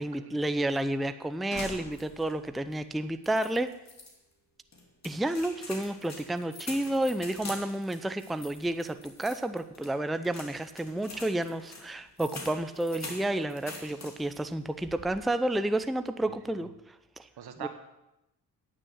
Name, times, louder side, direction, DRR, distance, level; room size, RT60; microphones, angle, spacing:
voice 1, 0.0-3.7 5.0-17.3 17.6-17.7, right 1 dB, ahead, 10 dB, 0.5 m, -31 dB
sound 1, 1.5-2.4 2.7-2.8 3.2-4.1 4.7-14.4 14.8-15.3, left 2 dB, 40° left, 2.6 m, -45 dB
voice 2, 16.3-16.7 17.4-17.7, right 9 dB, 70° right, 8 dB, 1.4 m, -43 dB
9.5 x 6.5 x 7.8 m, 0.92 s
supercardioid pair, 60°, 40 cm